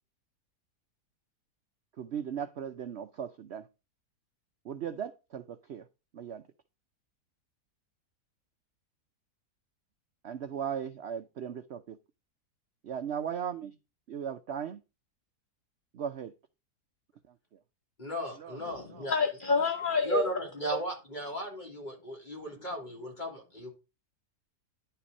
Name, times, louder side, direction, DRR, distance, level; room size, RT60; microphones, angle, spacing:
voice 1, 2.0-3.6 4.7-5.4 5.7-5.8 6.2-6.4 10.2-11.8 12.9-13.7 14.1-14.8 16.0-16.3 18.4-18.5, right 8 dB, 55° right, 0.7 m, -37 dB
voice 2, 18.0-19.1 20.0-23.7, right 1 dB, 25° left, 3.5 m, -36 dB
voice 3, 19.1-20.3 20.7-20.8, left 5 dB, 40° left, 0.7 m, -27 dB
11.0 x 5.7 x 5.4 m
omnidirectional pair, 1.7 m